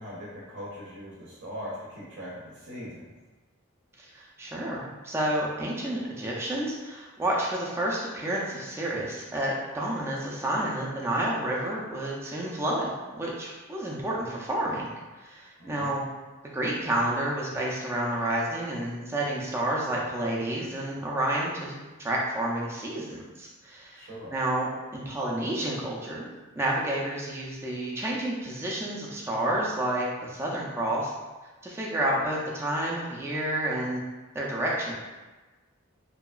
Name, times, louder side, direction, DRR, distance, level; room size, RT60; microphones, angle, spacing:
voice 1, 0.0-3.1 15.6-15.9 23.9-24.3, equal, 55° right, -6 dB, 0.6 m, -40 dB
voice 2, 4.0-14.9 15.1-16.1 16.5-26.3 26.6-31.1 31.6-34.0 34.3-34.9, right 1 dB, 10° right, -4 dB, 0.3 m, -30 dB
2.7 x 2.3 x 2.3 m, 1.2 s
head